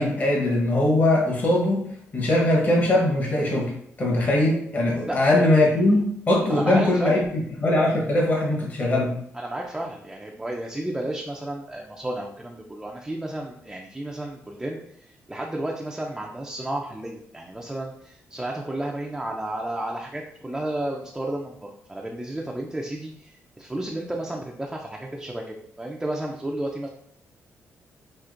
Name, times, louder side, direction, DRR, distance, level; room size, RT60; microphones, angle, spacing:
voice 1, 0.0-1.9 2.1-3.7 4.0-9.1, left 1 dB, 35° left, -2 dB, 1.0 m, -21 dB
voice 2, 5.1-5.4 6.5-7.2 9.3-26.9, right 1 dB, 10° right, -1 dB, 0.4 m, -32 dB
5.7 x 2.8 x 2.5 m, 0.71 s
cardioid pair, 140°, 5 cm